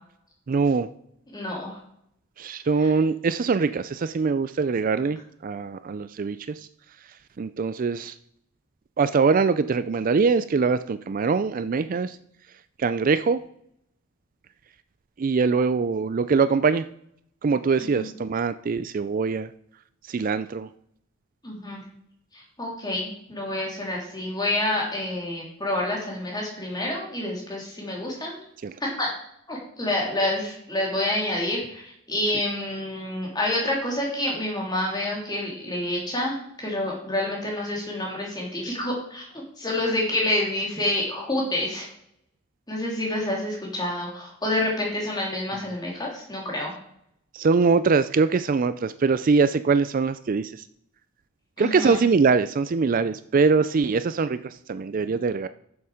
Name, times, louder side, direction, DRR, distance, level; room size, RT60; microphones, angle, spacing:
voice 1, 0.5-0.9 2.4-6.7 7.4-8.1 9.0-12.2 12.8-13.4 15.2-16.8 17.4-19.5 20.1-20.7 28.6-28.7 47.3-50.6 51.6-55.5, right 4 dB, 40° right, 13 dB, 0.4 m, -23 dB
voice 2, 1.3-1.8 2.8-2.9 17.8-18.0 21.4-21.8 22.3-28.4 28.8-29.1 29.5-41.9 42.7-46.7 51.6-52.0, left 1 dB, 20° left, -2 dB, 3.3 m, -28 dB
8.5 x 7.2 x 6.3 m, 0.72 s
head